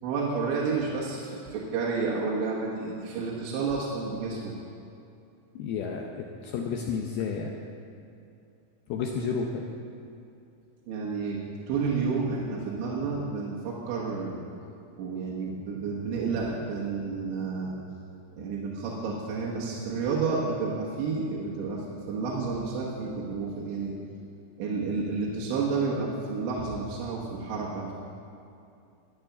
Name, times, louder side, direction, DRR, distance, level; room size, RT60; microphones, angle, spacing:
voice 1, 0.0-4.5 10.9-11.4 11.7-14.4 15.0-17.7 18.4-24.0 24.6-27.9, right 4 dB, 75° right, -4 dB, 3.5 m, -30 dB
voice 2, 5.6-7.5 8.9-9.7, left 5 dB, 85° left, 1 dB, 2.2 m, -31 dB
14.0 x 7.2 x 9.1 m, 2.6 s
omnidirectional pair, 5.5 m